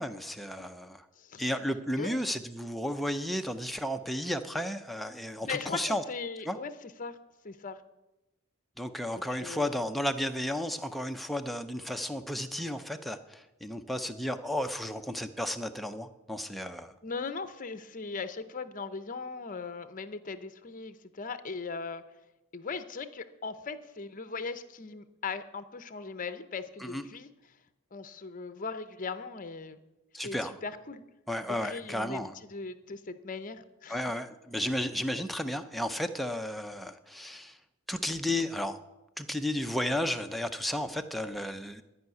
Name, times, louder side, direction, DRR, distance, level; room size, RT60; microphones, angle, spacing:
voice 1, 0.0-1.0 1.4-6.0 6.4-6.6 8.8-16.9 26.8-27.0 30.1-30.5 31.3-32.3 33.9-37.6 37.9-38.8 39.2-41.8, left 1 dB, ahead, 6 dB, 0.5 m, -33 dB
voice 2, 5.4-7.2 7.4-7.8 9.1-9.8 17.0-22.0 22.5-27.3 27.9-29.8 30.2-31.0 31.4-34.0, left 4 dB, 35° left, 11 dB, 0.7 m, -39 dB
12.5 x 5.7 x 9.2 m, 1.0 s
head